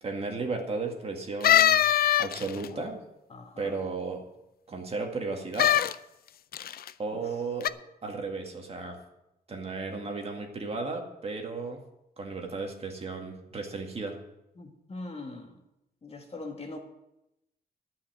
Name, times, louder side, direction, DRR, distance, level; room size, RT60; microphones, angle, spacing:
voice 1, 0.0-1.8 2.2-3.0 3.6-4.2 4.7-5.7 7.0-7.7 8.0-9.0 9.5-11.8 12.2-14.2, right 3 dB, 40° right, 2 dB, 2.0 m, -34 dB
sound 1, 1.4-2.7 5.5-5.9 6.5-6.9 7.6-7.7, left 11 dB, 70° left, 0.4 m, -22 dB
voice 2, 3.3-3.7 14.6-15.5 16.0-16.8, left 2 dB, 40° left, 2 dB, 1.9 m, -41 dB
12.5 x 5.7 x 9.2 m, 0.88 s
wide cardioid pair, 150°, 16 cm